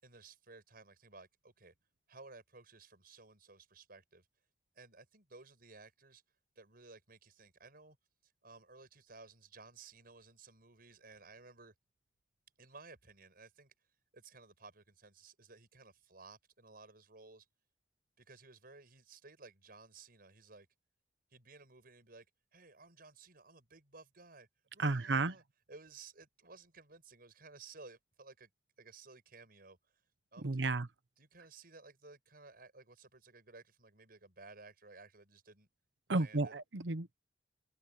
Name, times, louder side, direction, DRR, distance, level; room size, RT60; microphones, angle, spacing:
voice 1, 0.0-1.7 2.1-4.3 4.7-6.2 6.5-8.0 8.2-11.7 12.6-13.7 14.1-17.5 18.2-20.7 21.3-22.2 22.5-24.5 24.7-25.4 25.7-28.5 28.8-30.0 30.3-30.8 31.2-35.7 36.1-36.6, right 3 dB, 55° right, 6.8 m, -57 dB
voice 2, 24.8-25.3 30.4-30.9 36.1-37.1, right 3 dB, 80° right, 0.9 m, -32 dB
open air
head